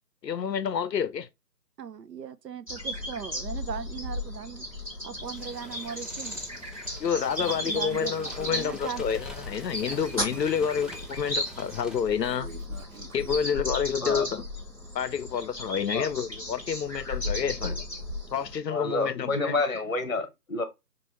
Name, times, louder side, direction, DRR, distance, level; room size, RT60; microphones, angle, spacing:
voice 1, 0.2-1.3 7.0-12.5 13.1-14.4 14.9-17.8 18.3-19.5, left 7 dB, 80° left, 0.6 m, -29 dB
voice 2, 1.8-4.6 5.0-6.4 7.4-8.2 8.5-9.1, right 7 dB, 75° right, 0.6 m, -38 dB
sound 1, 2.7-18.6, left 1 dB, 20° right, 1.1 m, -35 dB
sound 2, 5.2-12.3, left 1 dB, ahead, 0.4 m, -47 dB
Breathing, 7.4-8.7 9.8-11.1 12.2-13.5, right 3 dB, 55° right, 1.0 m, -46 dB
voice 3, 18.7-20.6, left 2 dB, 50° left, 0.9 m, -29 dB
4.7 x 2.5 x 3.0 m
figure-of-eight pair, 170°, 50 cm